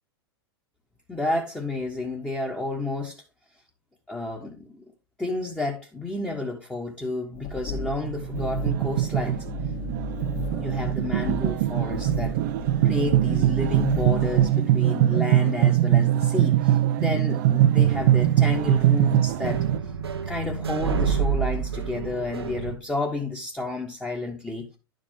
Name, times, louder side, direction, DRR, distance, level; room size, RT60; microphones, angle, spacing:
voice 1, 1.1-3.2 4.1-4.8 5.2-9.5 10.6-12.4 12.8-19.6 20.2-24.7, left 2 dB, 5° left, 1.4 m, -31 dB
sound 1, 7.3-14.5, left 2 dB, 45° left, 2.2 m, -35 dB
sound 2, 7.8-19.8, right 13 dB, 50° right, 0.4 m, -22 dB
sound 3, 17.8-22.7, right 6 dB, 75° right, 1.1 m, -29 dB
11.0 x 5.1 x 3.7 m
figure-of-eight pair, 95°, 13 cm